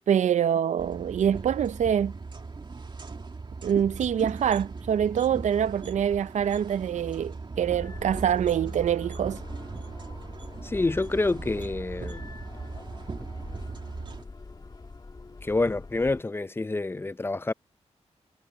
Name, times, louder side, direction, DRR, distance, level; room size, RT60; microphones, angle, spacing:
voice 1, 0.1-2.2 3.6-9.4, right 9 dB, 80° right, 0.6 m, -25 dB
sound 1, 0.8-14.2, right 4 dB, 40° right, 2.1 m, -39 dB
sound 2, 7.6-16.2, left 3 dB, 35° left, 1.7 m, -44 dB
voice 2, 10.6-12.2 15.4-17.5, left 2 dB, 20° left, 0.6 m, -27 dB
cardioid pair, 80°, 12 cm